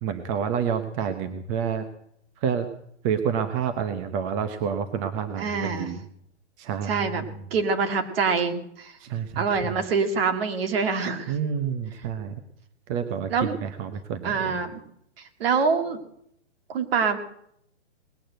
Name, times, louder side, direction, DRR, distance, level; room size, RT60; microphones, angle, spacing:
voice 1, 0.0-1.9 2.4-2.7 3.0-6.0 6.6-7.4 9.0-9.8 11.3-12.4 12.9-14.6, right 7 dB, 30° right, 9 dB, 0.9 m, -29 dB
voice 2, 5.4-5.9 6.9-8.9 9.4-11.3 13.3-13.6 14.2-14.8 15.4-16.0 16.7-17.2, right 5 dB, 55° right, 7 dB, 2.3 m, -25 dB
20.0 x 8.5 x 7.8 m, 0.72 s
hypercardioid pair, 145°, 35 cm